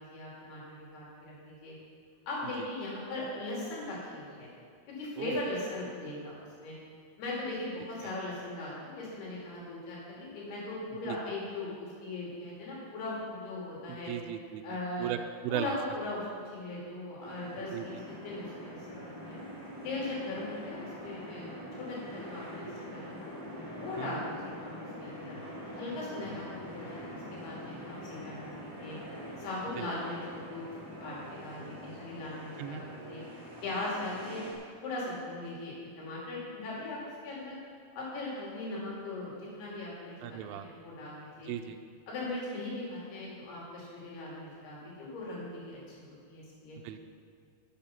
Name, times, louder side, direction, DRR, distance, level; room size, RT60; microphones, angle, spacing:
voice 1, 0.0-1.7 2.3-4.5 4.9-6.3 6.6-6.7 7.2-14.1 14.6-15.1 15.5-16.2 16.5-19.4 19.8-23.3 23.7-24.7 25.0-25.4 25.8-29.0 29.4-30.7 31.0-33.2 33.6-34.4 34.8-37.0 37.2-37.6 38.0-41.5 42.1-46.8, left 2 dB, 85° left, -5 dB, 4.7 m, -39 dB
voice 2, 13.9-15.2 15.4-15.8 17.7-17.8 24.0-24.2 29.8-29.9 32.6-32.8 40.2-40.7 41.5-41.8 46.8-47.0, right 11 dB, 80° right, 6 dB, 2.3 m, -37 dB
sound 1, 17.2-34.5, equal, 15° right, 1.6 m, -44 dB
10.5 x 7.3 x 5.8 m, 2.2 s
omnidirectional pair, 4.5 m